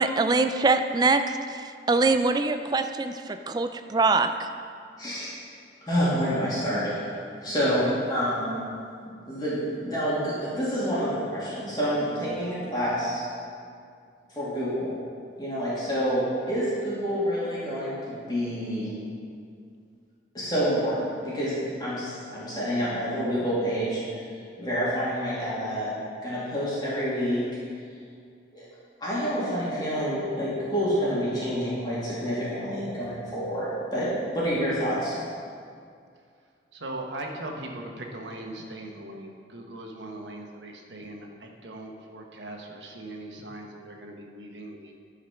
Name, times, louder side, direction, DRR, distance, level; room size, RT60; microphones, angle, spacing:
voice 1, 0.0-4.5, right 3 dB, 20° right, 9 dB, 0.3 m, -24 dB
voice 2, 5.0-5.3 5.9-8.6 9.3-13.2 14.3-14.9 15.4-17.9 18.3-18.9 20.3-24.0 24.6-25.9 26.2-27.4 28.5-28.6 29.0-34.1 34.3-35.1, equal, 25° left, -10 dB, 2.5 m, -28 dB
voice 3, 36.7-44.9, right 1 dB, 85° right, 1 dB, 1.2 m, -40 dB
11.0 x 4.9 x 5.9 m, 2.3 s
head